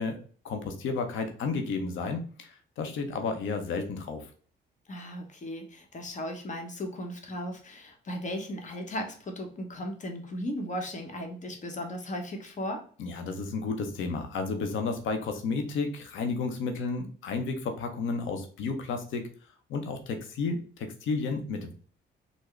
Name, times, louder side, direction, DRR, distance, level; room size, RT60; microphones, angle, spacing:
voice 1, 0.0-2.5 2.8-4.2 13.0-19.2 19.7-21.7, left 4 dB, 75° left, 6 dB, 0.7 m, -32 dB
voice 2, 4.9-12.8, equal, 40° left, 4 dB, 0.9 m, -36 dB
3.7 x 2.1 x 3.2 m, 0.43 s
cardioid pair, 90°, 20 cm